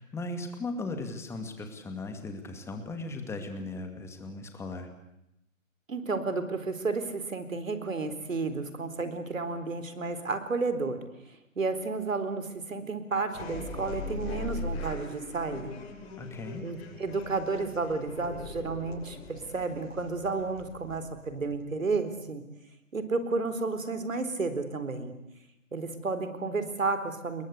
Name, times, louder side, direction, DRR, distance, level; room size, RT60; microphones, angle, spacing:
voice 1, 0.0-4.9 16.2-16.6, left 2 dB, 5° left, 6 dB, 2.4 m, -37 dB
voice 2, 5.9-11.0 11.3-15.8 16.6-22.4 22.9-25.1 25.7-27.4, right 3 dB, 70° right, 11 dB, 4.2 m, -32 dB
sound 1, 13.3-21.9, left 2 dB, 45° left, 6.8 m, -40 dB
28.5 x 22.0 x 8.4 m, 0.85 s
figure-of-eight pair, 135°, 41 cm